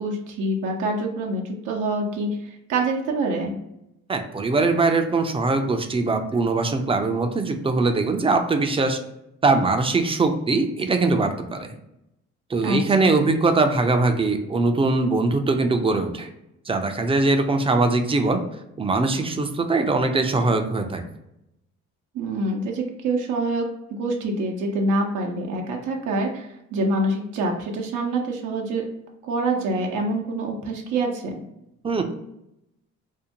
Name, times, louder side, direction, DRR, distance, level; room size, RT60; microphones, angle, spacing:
voice 1, 0.0-3.5 12.6-13.1 22.1-28.8 29.2-31.4, right 2 dB, 85° right, 0 dB, 0.6 m, -26 dB
voice 2, 4.1-9.0 9.4-11.7 12.5-16.3 16.7-18.4 18.8-21.0 31.8-32.0, right 3 dB, 20° right, 6 dB, 0.3 m, -21 dB
2.6 x 2.1 x 2.8 m, 0.84 s
cardioid pair, 90°, 30 cm